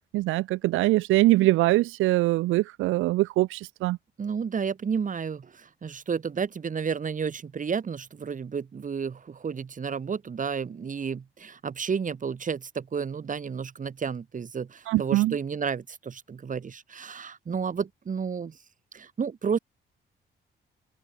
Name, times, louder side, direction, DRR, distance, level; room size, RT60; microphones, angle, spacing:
voice 1, 0.1-4.0 14.9-15.4, right 18 dB, 90° right, 0.6 m, -23 dB
voice 2, 4.2-18.6 18.9-19.6, right 6 dB, 40° right, 2.8 m, -31 dB
open air
cardioid pair, 90°, 20 cm